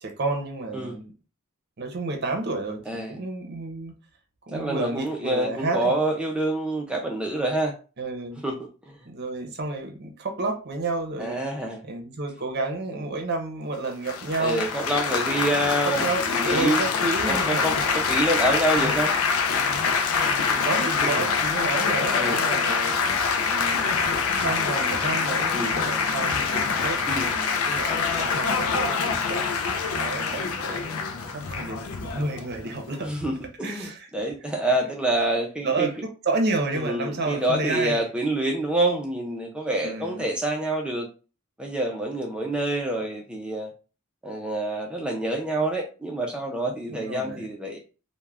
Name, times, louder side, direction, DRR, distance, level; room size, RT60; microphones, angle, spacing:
voice 1, 0.0-1.1 1.8-3.9 4.5-5.9 8.0-8.4 9.0-11.4 11.8-14.7 15.4-17.8 18.8-18.9 20.3-22.9 23.4-24.0 24.4-29.4 29.9-30.8 31.3-33.1 33.6-34.1 35.6-38.0 39.8-40.3 46.9-47.4, right 3 dB, 50° right, 4 dB, 0.6 m, -31 dB
voice 2, 2.9-3.2 4.5-7.7 8.4-8.6 8.9-9.0 11.2-11.8 14.4-16.1 16.5-16.8 17.3-19.1 20.4-20.7 21.0-21.3 22.1-22.4 25.5-25.7 27.1-27.3 29.1-29.2 33.0-35.9 36.7-41.1 41.6-43.7 44.2-47.8, right 1 dB, 5° right, 0 dB, 0.4 m, -27 dB
Laughter / Applause / Chatter, 14.1-33.2, left 5 dB, 75° left, 0.4 m, -25 dB
2.4 x 2.1 x 3.2 m, 0.34 s
head